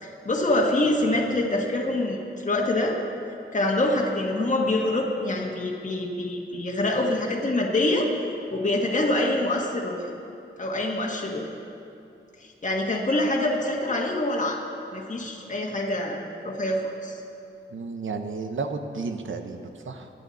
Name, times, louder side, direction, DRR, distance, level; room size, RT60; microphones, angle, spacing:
voice 1, 0.0-3.0 3.5-8.1 8.5-10.0 10.6-11.4 12.4-14.6 14.9-17.2, left 1 dB, 40° left, -2 dB, 1.7 m, -25 dB
voice 2, 17.7-20.1, right 4 dB, 75° right, 6 dB, 1.0 m, -32 dB
23.0 x 9.6 x 4.2 m, 2.6 s
wide cardioid pair, 110°, 20 cm